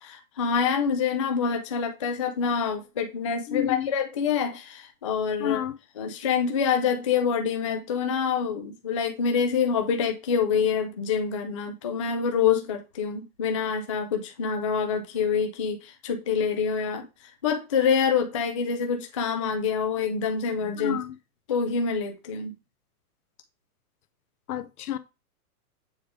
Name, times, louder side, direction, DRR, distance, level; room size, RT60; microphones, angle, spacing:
voice 1, 0.0-5.6 6.0-17.0 17.4-21.0 21.5-22.5, left 6 dB, 25° left, 0.3 m, -26 dB
voice 2, 3.5-3.9 5.4-5.8 20.8-21.1 24.5-25.0, left 11 dB, 70° left, 0.9 m, -30 dB
7.1 x 3.5 x 4.9 m
hypercardioid pair, 155°, 47 cm